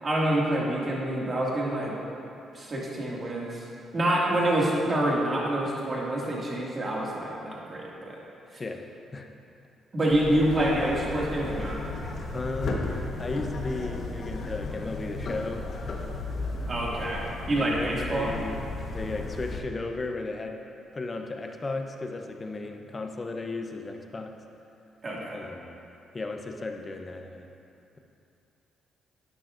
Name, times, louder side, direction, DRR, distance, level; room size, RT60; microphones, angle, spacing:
voice 1, 0.0-1.9 2.5-3.6 3.9-8.2 9.9-11.8 16.7-18.3 25.0-25.4, right 1 dB, 35° right, -4 dB, 2.1 m, -27 dB
sound 1, 10.1-19.6, left 2 dB, 55° left, 1.2 m, -35 dB
voice 2, 12.3-12.9 13.2-15.6 17.5-20.6 20.9-24.3 25.3-25.8 26.1-27.5, left 3 dB, 30° left, 4 dB, 0.8 m, -35 dB
12.0 x 8.9 x 2.6 m, 2.7 s
cardioid pair, 90°, 0 cm